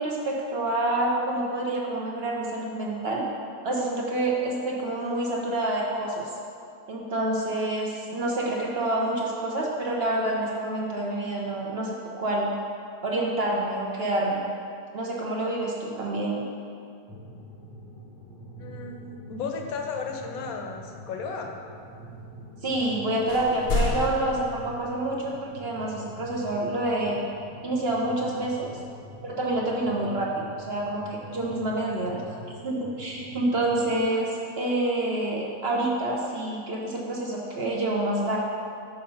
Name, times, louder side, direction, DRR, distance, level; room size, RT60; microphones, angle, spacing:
voice 1, 0.0-3.2 3.6-6.2 6.9-12.5 13.0-14.4 14.9-16.4 22.6-27.2 27.6-28.7 29.2-32.2 32.6-38.4, right 1 dB, 50° right, -3 dB, 0.8 m, -27 dB
sound 1, 17.1-34.0, right 1 dB, 5° left, 0.9 m, -45 dB
voice 2, 18.6-21.5 34.1-34.4, left 5 dB, 70° left, 3 dB, 1.1 m, -35 dB
sound 2, 22.8-23.0 23.3-25.3, left 3 dB, 50° left, 0.8 m, -30 dB
6.5 x 4.2 x 5.5 m, 2.4 s
omnidirectional pair, 1.6 m